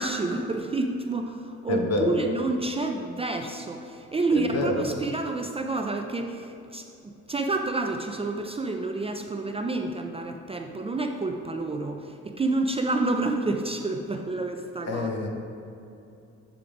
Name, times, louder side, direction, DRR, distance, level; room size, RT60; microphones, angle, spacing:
voice 1, 0.0-15.1, right 2 dB, 20° right, 4 dB, 0.4 m, -29 dB
voice 2, 1.7-2.2 4.3-4.9 14.9-15.3, left 3 dB, 55° left, 2 dB, 1.0 m, -27 dB
8.3 x 3.5 x 4.9 m, 2.7 s
cardioid pair, 90°, 30 cm